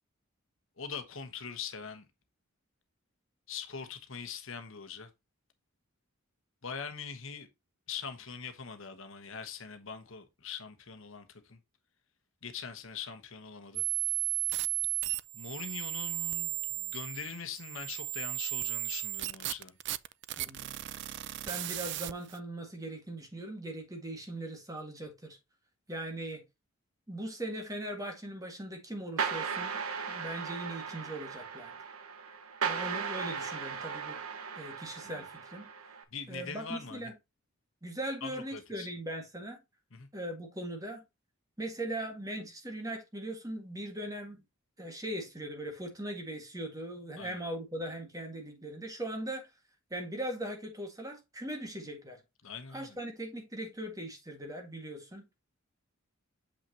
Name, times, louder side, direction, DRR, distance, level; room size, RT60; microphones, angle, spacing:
voice 1, 0.8-2.1 3.5-5.1 6.6-7.5 7.9-11.6 12.4-13.8 15.3-19.8 35.0-35.2 36.1-37.1 38.2-38.9 39.9-40.1 47.2-47.4 52.4-53.0, left 6 dB, 65° left, 1.1 m, -42 dB
sound 1, 13.8-22.4, right 18 dB, 55° right, 0.4 m, -35 dB
voice 2, 20.4-20.7 21.5-25.4 25.9-26.4 27.1-29.8 30.1-31.7 32.6-34.2 34.6-35.7 36.3-37.1 37.8-39.6 40.1-41.0 41.6-44.4 44.8-49.5 49.9-52.2 52.7-55.3, right 1 dB, 15° right, 1.8 m, -40 dB
sound 2, 29.2-36.0, right 6 dB, 85° right, 1.3 m, -37 dB
7.4 x 5.8 x 2.8 m
head